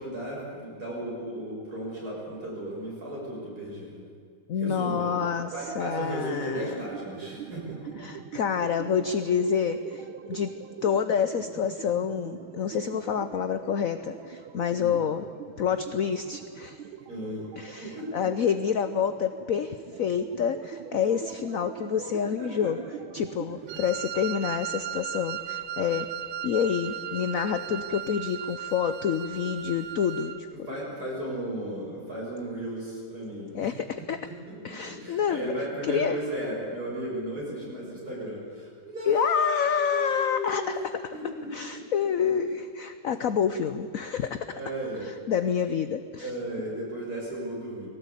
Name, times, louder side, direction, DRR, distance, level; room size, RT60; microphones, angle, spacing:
voice 1, 0.0-3.9 4.6-5.1 5.5-8.1 14.7-14.9 17.1-17.5 17.8-18.3 22.3-22.7 23.7-23.8 26.7-26.8 30.7-33.7 34.2-40.8 41.1-41.8 44.1-45.1 46.2-47.9, right 1 dB, 50° right, -4 dB, 7.2 m, -35 dB
voice 2, 4.5-6.8 8.0-10.5 10.8-15.3 15.6-16.8 17.6-22.8 23.1-26.1 26.4-30.5 33.5-34.2 34.6-35.5 35.8-36.2 39.1-40.8 41.5-44.5 45.0-46.3, left 7 dB, 65° left, 10 dB, 0.8 m, -28 dB
sound 1, 4.7-23.8, right 9 dB, 85° right, 1.7 m, -43 dB
Wind instrument woodwind instrument, 23.7-30.4, right 11 dB, 65° right, 1.1 m, -36 dB
20.0 x 17.5 x 8.3 m, 2.2 s
omnidirectional pair, 2.2 m